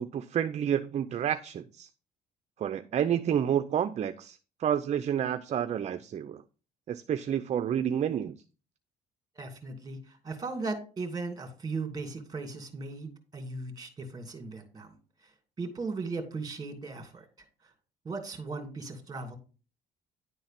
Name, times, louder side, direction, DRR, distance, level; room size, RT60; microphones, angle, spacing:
voice 1, 0.0-1.9 2.6-6.4 6.9-8.3, right 9 dB, 40° right, 0.6 m, -29 dB
voice 2, 9.4-15.0 15.2-15.3 15.6-17.3 18.0-19.4, right 3 dB, 20° right, 2.6 m, -37 dB
10.5 x 4.0 x 5.8 m
cardioid pair, 110°, 17 cm